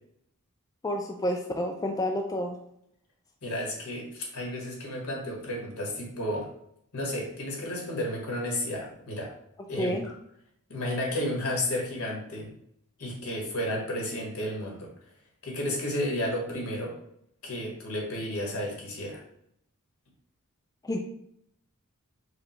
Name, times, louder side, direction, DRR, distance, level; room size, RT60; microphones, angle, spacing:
voice 1, 0.8-2.6 9.8-10.0 20.8-21.0, left 1 dB, 15° left, 3 dB, 0.3 m, -29 dB
voice 2, 3.4-6.5 6.9-9.3 9.7-10.1 10.7-12.5 13.0-14.9 15.4-16.9 17.4-19.2, left 1 dB, 75° left, -1 dB, 1.6 m, -32 dB
4.9 x 2.3 x 4.4 m, 0.72 s
head